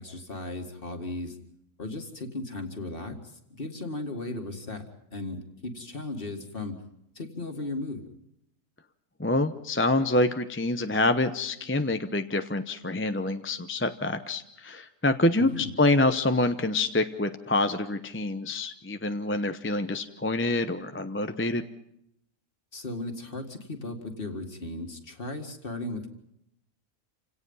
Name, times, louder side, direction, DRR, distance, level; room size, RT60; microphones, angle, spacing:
voice 1, 0.0-1.4 1.8-6.8 7.2-8.1 15.4-15.7 22.7-26.1, left 2 dB, 45° left, 5 dB, 2.3 m, -36 dB
voice 2, 9.2-21.6, left 2 dB, 10° left, 8 dB, 0.7 m, -26 dB
28.0 x 17.5 x 5.6 m, 0.77 s
omnidirectional pair, 1.4 m